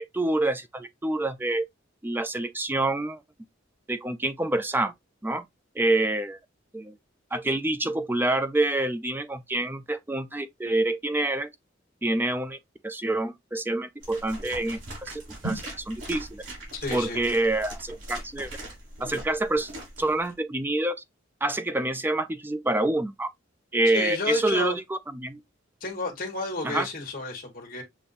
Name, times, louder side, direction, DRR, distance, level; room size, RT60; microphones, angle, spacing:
voice 1, 0.0-1.6 2.0-3.2 3.9-4.9 5.2-5.4 5.8-6.4 6.7-7.0 7.3-11.5 12.0-12.6 12.8-16.4 16.9-18.5 19.0-19.7 20.0-21.0 21.4-23.3 23.7-25.4 26.6-26.9, right 2 dB, 10° right, 0.4 m, -27 dB
sound 1, 14.0-20.3, right 2 dB, 85° right, 3.3 m, -39 dB
voice 2, 16.8-17.2 23.8-24.8 25.8-27.8, left 3 dB, 45° left, 1.5 m, -32 dB
6.9 x 2.6 x 2.5 m
head